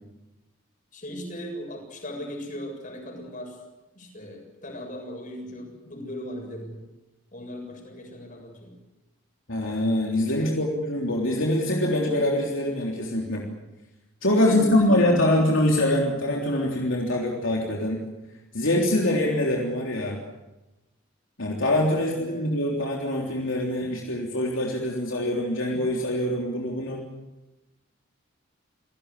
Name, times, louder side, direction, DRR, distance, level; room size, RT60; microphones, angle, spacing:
voice 1, 0.9-3.6 3.9-6.8 7.3-8.7 10.3-10.6 14.3-15.4 21.9-22.5, left 1 dB, 35° left, 3 dB, 7.4 m, -38 dB
voice 2, 9.5-13.5 14.2-18.0 18.5-20.2 21.4-27.0, left 1 dB, 65° left, -1 dB, 3.5 m, -24 dB
28.5 x 18.0 x 8.3 m, 1.0 s
head